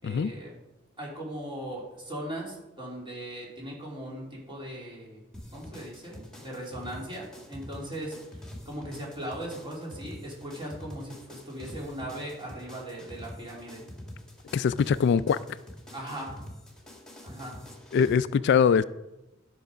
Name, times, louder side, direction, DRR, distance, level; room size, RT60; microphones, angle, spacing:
voice 1, 0.0-0.5 1.0-13.8 15.9-16.4 17.2-17.6, right 1 dB, 25° right, 3.1 m, -39 dB
sound 1, 5.3-18.1, left 1 dB, 5° left, 2.2 m, -45 dB
voice 2, 14.5-15.4 17.9-18.8, left 6 dB, 60° left, 0.3 m, -22 dB
12.0 x 6.9 x 5.0 m
head